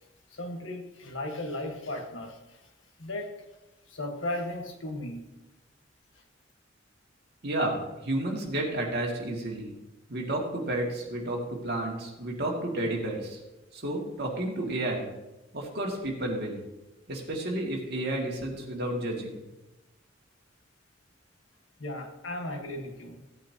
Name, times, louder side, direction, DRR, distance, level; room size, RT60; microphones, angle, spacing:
voice 1, 0.3-2.4 3.0-3.4 3.9-5.3 21.8-23.2, left 1 dB, 80° left, 3 dB, 1.5 m, -36 dB
voice 2, 7.4-9.7 10.1-13.4 13.7-15.1 15.5-16.6 17.1-19.4, right 1 dB, 55° right, -2 dB, 2.3 m, -31 dB
16.0 x 8.4 x 2.9 m, 1.0 s
head